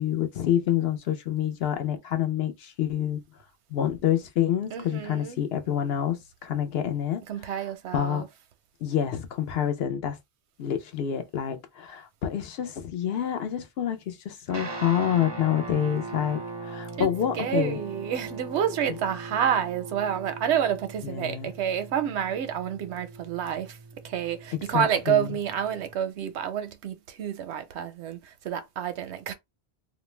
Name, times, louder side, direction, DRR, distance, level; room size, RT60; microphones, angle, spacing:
voice 1, 0.0-3.2 3.7-7.2 7.9-8.3 8.8-10.2 10.6-17.8 21.0-21.5 24.5-25.4, left 10 dB, 70° left, 0.8 m, -27 dB
voice 2, 4.7-5.4 7.3-8.3 17.0-23.8 24.0-29.3, right 9 dB, 85° right, 0.9 m, -29 dB
Guitar, 14.5-25.9, right 3 dB, 40° right, 0.4 m, -40 dB
2.4 x 2.1 x 3.1 m
omnidirectional pair, 1.1 m